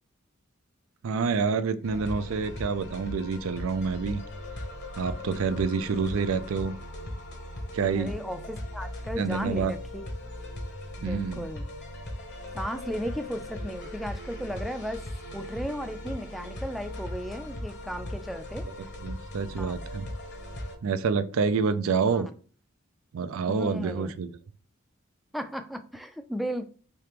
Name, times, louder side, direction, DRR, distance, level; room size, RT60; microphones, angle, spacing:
voice 1, 1.0-4.2 5.0-6.8 7.7-8.1 9.2-9.7 11.0-11.5 19.0-20.1 20.8-22.3 23.1-24.3, right 5 dB, 75° right, 12 dB, 0.4 m, -27 dB
sound 1, 1.8-20.8, left 1 dB, 55° left, 0.9 m, -38 dB
voice 2, 8.0-10.1 11.0-11.7 12.5-15.0 15.3-18.7 19.6-19.7 22.1-22.2 23.5-24.1 25.3-26.7, equal, ahead, 7 dB, 0.3 m, -35 dB
3.4 x 2.8 x 2.9 m, 0.40 s
head